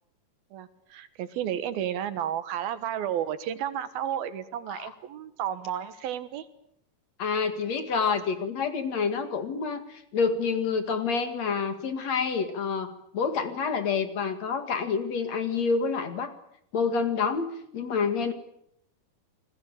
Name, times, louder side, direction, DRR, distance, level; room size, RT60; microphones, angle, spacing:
voice 1, 0.5-6.5, right 10 dB, 90° right, 13 dB, 3.4 m, -32 dB
voice 2, 7.2-16.3 16.7-18.3, left 5 dB, 50° left, 9 dB, 2.9 m, -28 dB
28.5 x 20.0 x 9.1 m, 0.74 s
omnidirectional pair, 4.2 m